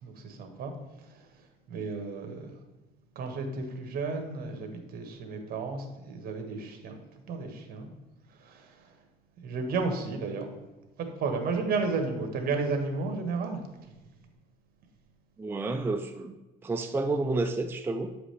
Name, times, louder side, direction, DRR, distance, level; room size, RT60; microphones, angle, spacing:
voice 1, 0.0-0.7 1.1-1.2 1.7-2.5 3.1-7.0 7.3-7.9 8.4-8.9 9.4-10.5 11.0-13.6, right 4 dB, 60° right, 4 dB, 1.4 m, -33 dB
voice 2, 15.4-16.3 16.6-18.1, right 3 dB, 15° right, 6 dB, 0.4 m, -30 dB
8.4 x 5.0 x 3.3 m, 1.1 s
cardioid pair, 110°, 17 cm